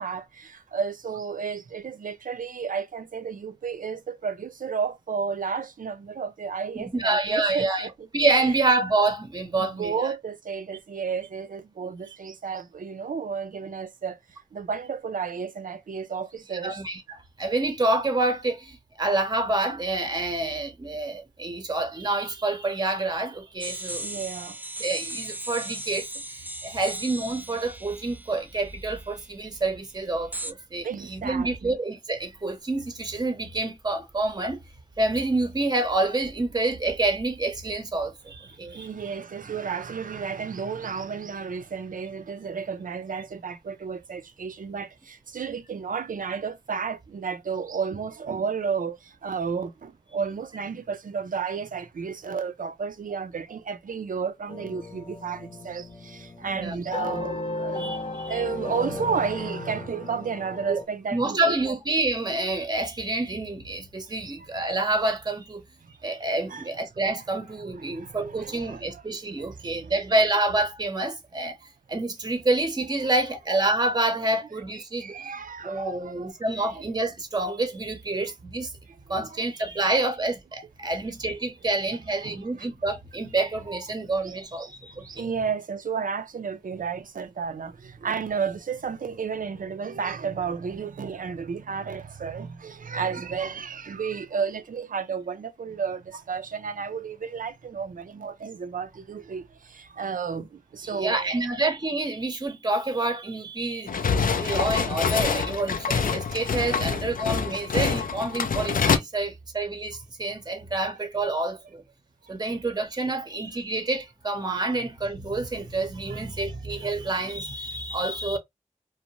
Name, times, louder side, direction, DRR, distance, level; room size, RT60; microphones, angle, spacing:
voice 1, 0.0-8.1 8.4-8.5 9.6-14.2 14.5-16.8 24.0-24.6 30.8-31.8 38.7-61.7 64.2-64.5 65.8-65.9 66.5-66.7 67.8-69.0 69.4-69.9 74.7-76.3 76.8-76.9 78.9-79.0 79.3-79.4 80.8-80.9 82.2-82.7 84.2-84.7 85.0-101.5 104.2-104.7 106.7-106.9 107.5-107.6 116.1-116.2, right 6 dB, 75° right, 0.4 m, -32 dB
voice 2, 6.8-7.9 8.1-10.1 16.6-24.2 24.8-34.6 35.0-38.9 56.4-56.8 57.8-58.4 60.7-60.8 61.1-65.6 66.0-71.6 71.9-75.3 75.6-78.7 79.1-85.3 100.8-111.8 112.3-118.4, right 2 dB, 30° right, 0.7 m, -28 dB
sound 1, 23.6-29.3 30.3-30.5, right 1 dB, 10° right, 0.3 m, -37 dB
sound 2, 54.5-60.8, left 2 dB, 40° left, 0.7 m, -35 dB
sound 3, 103.9-109.0, left 6 dB, 80° left, 0.4 m, -25 dB
2.6 x 2.1 x 2.9 m
wide cardioid pair, 60°, 14 cm